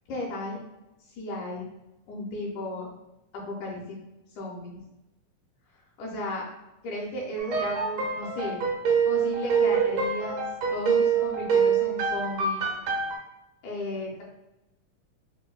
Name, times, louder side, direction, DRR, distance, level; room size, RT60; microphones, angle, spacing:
voice 1, 0.1-0.6 1.2-1.7 2.1-2.9 3.3-4.0 4.4-4.8 6.0-6.4 6.8-8.6 9.1-10.4 10.7-12.6 13.6-14.2, left 1 dB, 80° left, -3 dB, 2.0 m, -34 dB
sound 1, 7.4-13.2, right 6 dB, 85° right, 2.3 m, -25 dB
5.1 x 2.1 x 2.2 m, 0.96 s
omnidirectional pair, 3.6 m